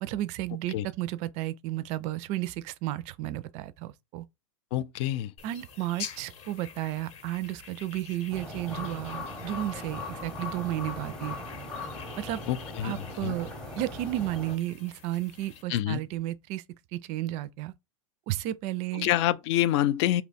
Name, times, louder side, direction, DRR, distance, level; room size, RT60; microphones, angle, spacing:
voice 1, 0.0-4.3 5.4-11.4 12.2-12.4 12.8-13.5 13.8-16.6 16.9-17.7 18.3-19.1, right 15 dB, 40° right, 0.4 m, -33 dB
voice 2, 4.7-5.3 12.5-13.3 15.7-16.0 18.9-20.2, left 13 dB, 55° left, 0.4 m, -27 dB
sound 1, 5.4-15.6, left 7 dB, 35° left, 0.8 m, -47 dB
sound 2, 8.3-14.6, left 2 dB, 5° left, 0.7 m, -39 dB
2.7 x 2.2 x 4.0 m
hypercardioid pair, 115°, 18 cm